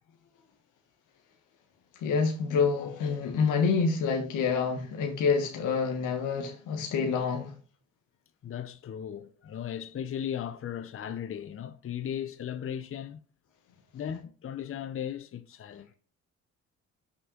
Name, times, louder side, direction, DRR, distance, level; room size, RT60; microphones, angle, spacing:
voice 1, 2.0-7.5, left 5 dB, 85° left, 1.5 m, -27 dB
voice 2, 8.4-13.2 13.9-15.9, left 9 dB, 45° left, 0.8 m, -37 dB
6.2 x 5.5 x 6.6 m
cardioid pair, 90°, 30 cm